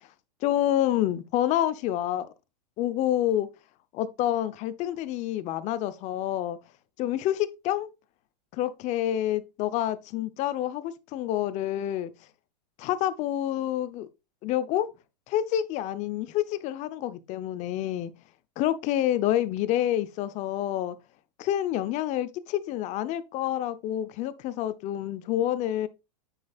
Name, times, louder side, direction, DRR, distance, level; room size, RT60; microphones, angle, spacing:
voice 1, 0.4-2.3 2.8-3.5 3.9-6.6 7.0-7.9 8.5-12.1 12.8-14.1 14.4-14.9 15.3-18.1 18.6-21.0 21.4-25.9, left 12 dB, 35° left, 0.7 m, -28 dB
9.2 x 5.4 x 2.4 m
supercardioid pair, 135°, 21 cm